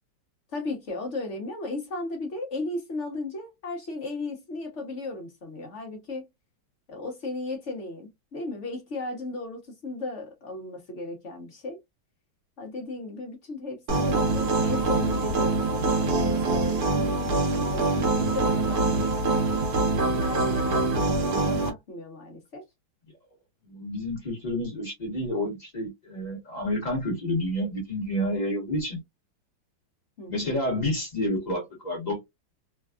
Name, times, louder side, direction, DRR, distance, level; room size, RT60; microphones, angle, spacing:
voice 1, 0.5-6.3 6.9-11.8 12.6-19.5 19.9-22.6 30.2-30.6, left 2 dB, 50° left, 0.9 m, -36 dB
sound 1, 13.9-21.7, right 3 dB, 55° right, 1.3 m, -24 dB
voice 2, 23.6-29.0 30.3-32.2, left 1 dB, 25° left, 1.1 m, -29 dB
3.4 x 2.3 x 2.3 m
omnidirectional pair, 2.2 m